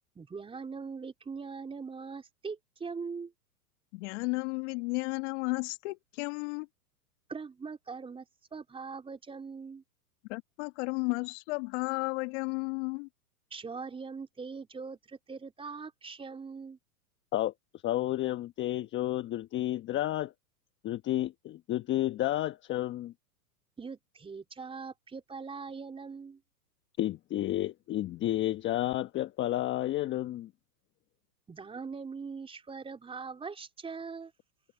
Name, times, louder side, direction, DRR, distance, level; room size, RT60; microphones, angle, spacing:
voice 1, 0.2-3.3 7.3-8.3 8.5-9.8 13.5-16.8 23.8-26.4 31.5-34.3, right 5 dB, 10° right, 4.1 m, -41 dB
voice 2, 3.9-6.7 10.3-13.1, left 28 dB, 45° left, 1.8 m, -33 dB
voice 3, 17.8-20.3 20.8-23.1 27.0-30.5, left 14 dB, 25° left, 1.2 m, -31 dB
hypercardioid pair, 130°, 47 cm